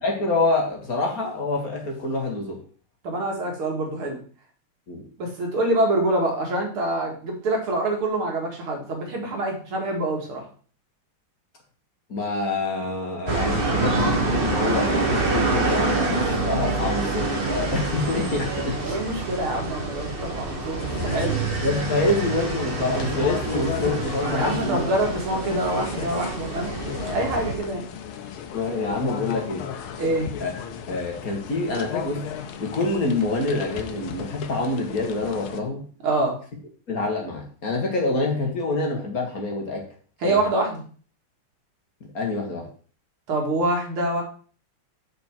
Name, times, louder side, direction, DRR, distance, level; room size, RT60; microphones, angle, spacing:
voice 1, 0.0-2.6 4.9-5.0 12.1-19.0 21.1-24.8 28.5-29.6 30.4-30.6 30.9-32.3 32.6-35.8 36.9-39.9 40.2-40.4 42.1-42.7, left 2 dB, 45° left, 1 dB, 2.1 m, -26 dB
voice 2, 3.0-4.2 5.2-10.4 18.8-21.4 24.3-26.7 27.0-27.9 30.0-30.3 36.0-36.4 40.2-40.8 43.3-44.2, right 1 dB, 85° right, 1 dB, 2.9 m, -25 dB
sound 1, 13.3-27.6, right 3 dB, 30° right, 1.5 m, -26 dB
sound 2, 20.8-35.6, left 8 dB, 80° left, 1.7 m, -35 dB
6.6 x 6.5 x 4.6 m, 0.42 s
omnidirectional pair, 2.3 m